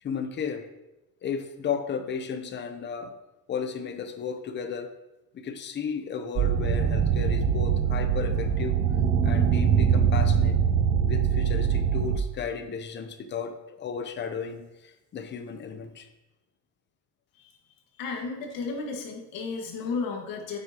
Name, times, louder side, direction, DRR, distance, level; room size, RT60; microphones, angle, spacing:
voice 1, 0.0-0.7 1.2-3.1 3.5-4.9 5.3-8.8 9.2-10.6 11.1-16.1, left 6 dB, 30° left, 8 dB, 0.8 m, -34 dB
sound 1, 6.4-12.2, right 7 dB, 35° right, 0.6 m, -23 dB
voice 2, 18.0-20.6, left 4 dB, 70° left, 2 dB, 1.9 m, -33 dB
9.5 x 7.9 x 3.0 m, 1.0 s
cardioid pair, 155°, 35 cm